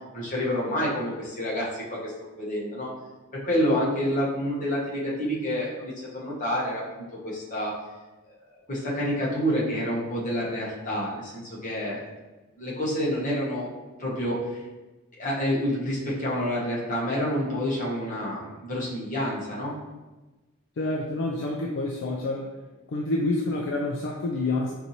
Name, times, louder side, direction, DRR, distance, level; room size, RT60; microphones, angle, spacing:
voice 1, 0.1-2.9 3.4-7.7 8.5-12.0 12.6-13.7 14.0-14.6 15.1-19.7, equal, 40° left, -5 dB, 1.0 m, -28 dB
voice 2, 20.8-22.5 22.9-24.7, left 2 dB, 60° left, -1 dB, 0.4 m, -28 dB
4.5 x 2.6 x 2.7 m, 1.1 s
head